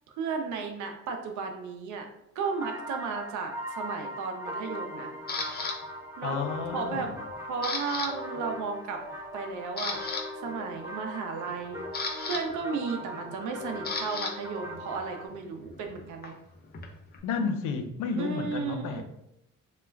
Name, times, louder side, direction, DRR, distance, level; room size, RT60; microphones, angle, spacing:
voice 1, 0.2-2.1 2.4-5.1 6.2-6.4 6.7-7.1 7.5-9.0 9.3-10.0 10.4-11.9 12.3-16.4 18.2-19.0, right 5 dB, 75° right, 4 dB, 0.5 m, -34 dB
sound 1, 2.4-15.3, equal, 10° right, 0.7 m, -40 dB
Camera, 5.3-5.7 6.3-6.7 7.0-8.1 8.4-8.6 9.1-9.2 9.6-10.2 11.4-14.3 14.6-17.2, left 4 dB, 35° left, 0.5 m, -35 dB
voice 2, 6.2-7.2 17.2-19.0, left 5 dB, 90° left, 6 dB, 0.5 m, -31 dB
2.3 x 2.1 x 3.2 m, 0.82 s
cardioid pair, 90°, 30 cm